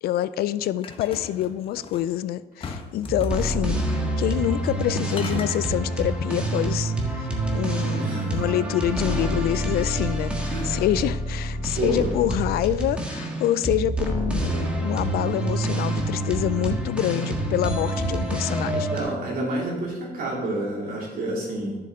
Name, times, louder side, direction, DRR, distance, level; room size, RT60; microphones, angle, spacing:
voice 1, 0.0-3.8 4.2-18.9, left 12 dB, 65° left, 0.4 m, -26 dB
sound 1, 0.8-2.1 2.6-3.6 4.5-4.8 5.1-5.6, left 4 dB, 30° left, 1.1 m, -38 dB
sound 2, 3.0-19.0, right 1 dB, 5° right, 1.6 m, -27 dB
voice 2, 8.0-8.4 10.5-10.8 11.7-12.1 18.9-21.8, right 1 dB, 60° right, 2.9 m, -29 dB
11.0 x 6.8 x 3.6 m
cardioid pair, 110°, 17 cm